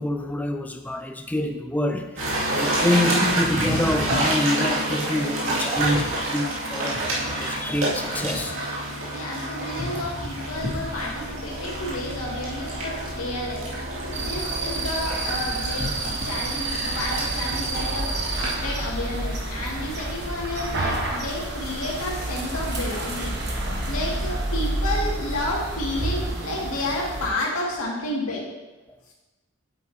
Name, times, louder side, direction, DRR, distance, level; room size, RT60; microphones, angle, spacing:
voice 1, 0.0-8.6 14.1-14.2, left 1 dB, 5° left, 5 dB, 0.4 m, -26 dB
sound 1, 2.2-20.2, right 1 dB, 70° right, 2.3 m, -28 dB
voice 2, 2.7-3.2 9.1-13.7 14.2-18.1 18.4-23.4 23.9-28.4 29.1-29.2, left 1 dB, 85° left, -3 dB, 2.2 m, -31 dB
sound 2, 10.5-26.3, equal, 30° right, 2.4 m, -36 dB
sound 3, 14.1-27.3, right 2 dB, 50° right, 1.2 m, -30 dB
9.1 x 8.1 x 2.8 m, 1.1 s
head